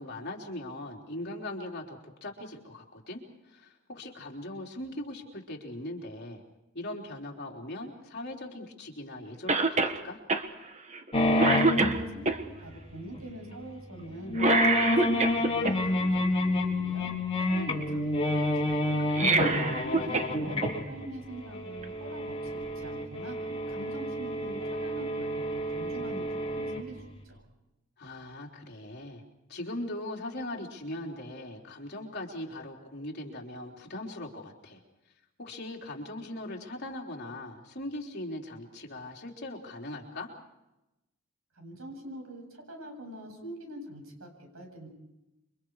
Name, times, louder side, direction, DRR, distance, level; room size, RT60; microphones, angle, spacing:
voice 1, 0.0-6.4 6.7-10.2 19.4-20.4 28.0-29.2 29.5-34.8 35.4-40.3, left 1 dB, 50° left, 0 dB, 3.9 m, -40 dB
Cough, 9.5-10.0 10.3-10.4 10.9-11.1 11.4-12.4 14.4-15.7 19.0-20.3 20.6-20.7 21.8-21.9, right 3 dB, 35° right, 1.5 m, -25 dB
sound 1, 11.1-12.7 13.1-13.2 13.5-13.6 14.3-27.0, left 1 dB, 30° left, 3.9 m, -29 dB
voice 2, 11.4-14.4 14.9-17.1 17.5-19.2 20.0-23.4 23.7-27.4 41.6-44.9, right 1 dB, 80° right, 3 dB, 7.9 m, -44 dB
29.0 x 24.5 x 4.9 m, 0.93 s
head